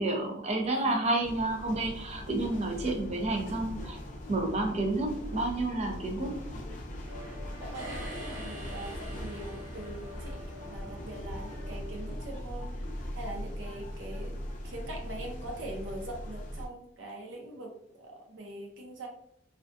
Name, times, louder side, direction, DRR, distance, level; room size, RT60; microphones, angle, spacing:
voice 1, 0.0-4.0 4.3-6.4, right 2 dB, 35° right, 2 dB, 0.5 m, -30 dB
voice 2, 0.6-1.1 2.1-2.3 2.8-3.2 3.8-4.2 7.1-19.1, right 1 dB, 80° right, 1 dB, 0.7 m, -43 dB
sound 1, 1.2-16.7, equal, 40° left, 0.5 m, -40 dB
sound 2, 7.0-12.2, left 1 dB, 15° right, 0.9 m, -49 dB
sound 3, 7.7-10.6, right 1 dB, 55° right, 1.1 m, -46 dB
2.4 x 2.2 x 2.5 m, 0.67 s
head